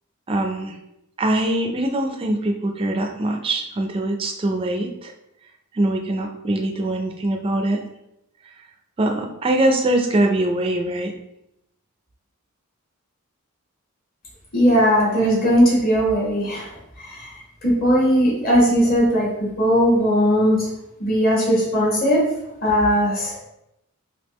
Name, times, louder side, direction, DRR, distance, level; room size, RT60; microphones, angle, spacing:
voice 1, 0.3-0.7 1.2-5.1 5.7-7.8 9.0-11.1, right 1 dB, 25° right, 3 dB, 0.3 m, -22 dB
voice 2, 14.5-16.7 17.0-17.3 17.6-20.7 21.0-22.2 22.6-23.4, equal, 40° left, -5 dB, 1.4 m, -18 dB
3.5 x 2.7 x 3.0 m, 0.84 s
head